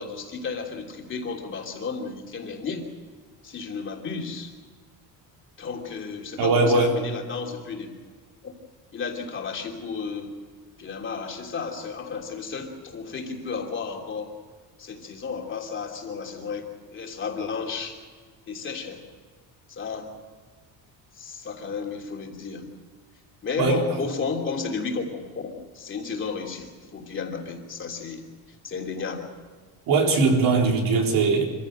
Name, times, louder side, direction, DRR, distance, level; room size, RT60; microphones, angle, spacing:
voice 1, 0.0-2.9 3.4-4.5 5.6-7.9 8.4-8.5 8.9-10.3 10.8-14.3 14.8-18.0 18.5-19.0 19.7-20.1 21.1-22.6 23.4-29.3, left 5 dB, 30° left, 1 dB, 3.1 m, -33 dB
voice 2, 6.4-6.9 23.6-23.8 29.9-31.4, right 3 dB, 55° right, 2 dB, 4.1 m, -20 dB
25.5 x 15.5 x 7.9 m, 1.5 s
cardioid pair, 180°, 39 cm